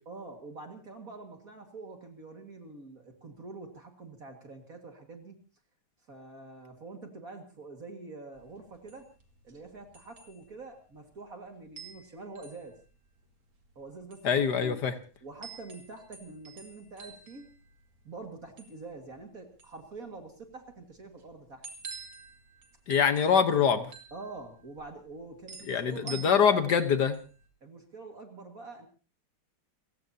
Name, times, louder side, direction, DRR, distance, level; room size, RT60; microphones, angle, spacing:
voice 1, 0.1-5.4 6.1-9.1 9.4-12.8 13.8-14.8 15.2-17.5 18.0-21.7 24.1-26.6 27.6-28.9, right 3 dB, 40° right, 4 dB, 2.3 m, -45 dB
sound 1, 8.3-27.5, right 5 dB, 65° right, 3.1 m, -50 dB
voice 2, 14.2-14.9 22.9-23.9 25.7-27.2, left 7 dB, 55° left, 10 dB, 1.6 m, -24 dB
30.0 x 16.0 x 2.8 m, 0.36 s
omnidirectional pair, 2.3 m